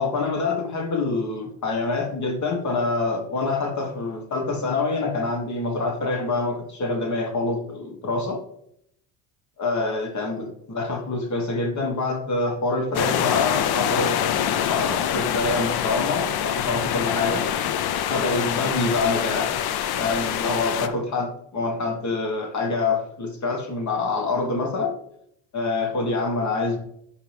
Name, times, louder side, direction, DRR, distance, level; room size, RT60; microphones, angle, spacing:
voice 1, 0.0-8.4 9.6-17.5 18.1-19.6 19.9-25.0 25.5-26.8, left 3 dB, 40° left, 5 dB, 1.5 m, -26 dB
sound 1, 12.9-20.9, left 9 dB, 55° left, 0.7 m, -25 dB
11.0 x 4.9 x 3.4 m, 0.74 s
supercardioid pair, 85°, 45 cm